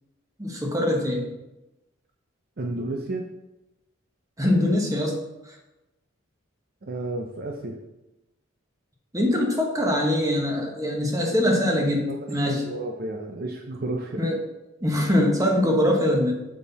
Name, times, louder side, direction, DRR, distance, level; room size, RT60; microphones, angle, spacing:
voice 1, 0.4-1.3 4.4-5.2 9.1-12.6 14.2-14.4 14.8-16.3, left 1 dB, 15° right, 0 dB, 1.1 m, -23 dB
voice 2, 2.6-3.2 6.8-7.8 12.1-14.2, right 2 dB, 45° right, 2 dB, 0.6 m, -32 dB
6.5 x 5.4 x 4.0 m, 0.97 s
head